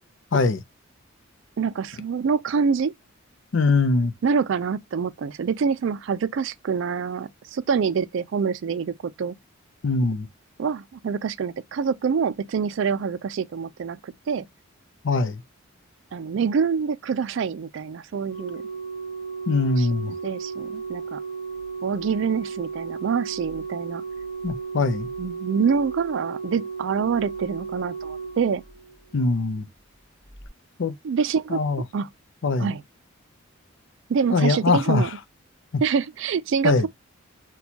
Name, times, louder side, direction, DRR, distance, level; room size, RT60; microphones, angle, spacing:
voice 1, 0.3-0.6 3.5-4.1 9.8-10.3 15.0-15.4 19.5-20.1 24.4-25.1 29.1-29.7 30.8-30.9 31.5-31.8 32.4-32.7 34.3-35.1 35.7-35.8 36.6-36.8, left 3 dB, 60° left, 0.5 m, -22 dB
voice 2, 1.6-2.9 4.2-9.4 10.6-14.5 16.1-18.6 19.8-19.9 20.2-21.2 21.8-24.0 25.2-28.6 31.0-31.6 31.9-32.1 32.6-32.8 34.1-35.1 35.8-36.9, right 6 dB, 60° right, 0.3 m, -26 dB
Organ, 18.3-29.2 30.3-30.5, right 5 dB, 10° left, 1.2 m, -34 dB
4.3 x 2.3 x 2.7 m
head